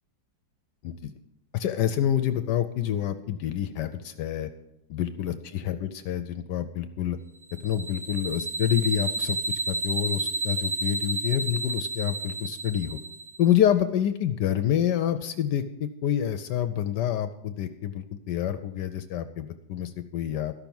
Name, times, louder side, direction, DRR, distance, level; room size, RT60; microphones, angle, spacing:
voice 1, 1.5-4.5 4.9-7.2 7.6-9.4 9.7-13.0 13.4-20.5, left 10 dB, 75° left, 10 dB, 1.1 m, -27 dB
sound 1, 7.5-13.4, right 3 dB, 35° right, 0.6 m, -31 dB
13.0 x 6.0 x 7.0 m, 0.87 s
omnidirectional pair, 2.0 m